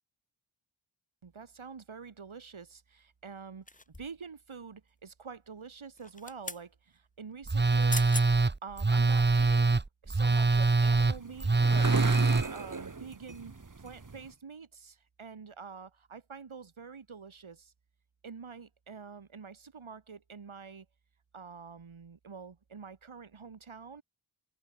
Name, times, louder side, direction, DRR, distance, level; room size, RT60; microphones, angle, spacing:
voice 1, 1.2-8.1 8.6-11.9 12.2-17.7 18.2-20.9 21.3-24.0, right 5 dB, 85° right, 6.5 m, -47 dB
sound 1, 3.7-4.3 6.0-6.7 7.6-7.7 7.9-8.3 8.8-9.0, left 2 dB, 15° left, 2.0 m, -39 dB
Telephone, 7.5-12.4, right 3 dB, 20° right, 1.0 m, -24 dB
sound 2, 10.8-14.3, right 4 dB, 40° right, 2.6 m, -38 dB
open air
wide cardioid pair, 80°, 47 cm